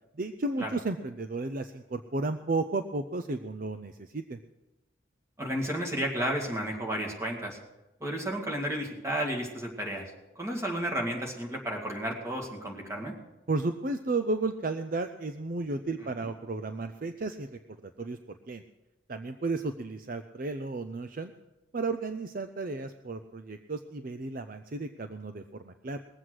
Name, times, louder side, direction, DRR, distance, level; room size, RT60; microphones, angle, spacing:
voice 1, 0.2-4.4 13.5-18.6 19.1-21.3 21.7-26.0, right 3 dB, 45° right, 9 dB, 0.5 m, -33 dB
voice 2, 5.4-7.6 8.0-10.1 10.4-13.1 16.2-16.3, right 1 dB, 15° right, -1 dB, 2.1 m, -32 dB
20.0 x 7.8 x 6.3 m, 0.97 s
head